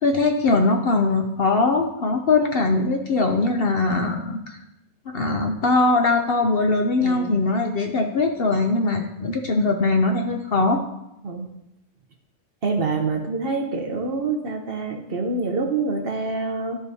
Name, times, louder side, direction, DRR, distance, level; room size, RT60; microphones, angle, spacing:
voice 1, 0.0-4.6 5.1-10.8, left 3 dB, 55° left, 4 dB, 0.7 m, -21 dB
voice 2, 7.0-7.4 11.2-11.5 12.6-16.8, right 3 dB, 50° right, 3 dB, 0.9 m, -26 dB
13.0 x 5.0 x 2.8 m, 0.85 s
omnidirectional pair, 1.4 m